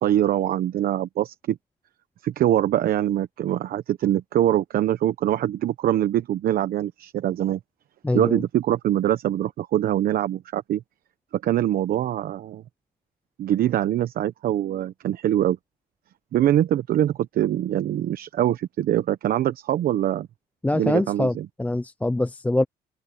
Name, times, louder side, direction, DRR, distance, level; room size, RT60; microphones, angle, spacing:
voice 1, 0.0-1.6 2.2-7.6 8.1-10.8 11.3-12.6 13.4-15.6 16.3-20.3 20.7-21.5, right 12 dB, 60° right, 1.0 m, -23 dB
voice 2, 8.0-8.4 20.6-22.6, left 2 dB, 10° left, 0.6 m, -24 dB
open air
cardioid pair, 110°, 17 cm